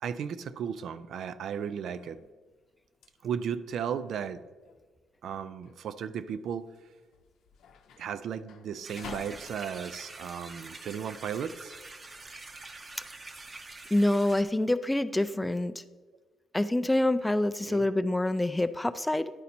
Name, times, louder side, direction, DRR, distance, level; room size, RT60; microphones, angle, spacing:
voice 1, 0.0-2.2 3.2-4.4 5.2-6.7 8.0-11.7 17.6-17.8, right 7 dB, 70° right, 13 dB, 0.4 m, -35 dB
sound 1, 1.5-11.6, left 5 dB, 80° left, 0.7 m, -52 dB
sound 2, 8.8-14.4, right 3 dB, 30° right, 0.7 m, -46 dB
voice 2, 13.9-15.7 16.5-19.3, left 1 dB, 10° left, 11 dB, 0.4 m, -26 dB
10.5 x 4.1 x 4.3 m, 1.3 s
cardioid pair, 90°, 0 cm